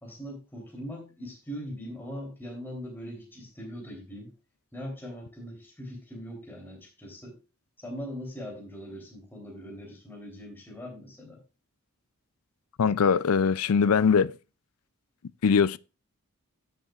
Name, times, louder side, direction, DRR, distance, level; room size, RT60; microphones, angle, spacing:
voice 1, 0.0-4.3 4.7-7.4 7.8-11.4, equal, 10° left, 3.2 m, -41 dB
voice 2, 12.8-14.3 15.4-15.8, left 6 dB, 90° left, 0.4 m, -22 dB
15.5 x 6.9 x 2.4 m
head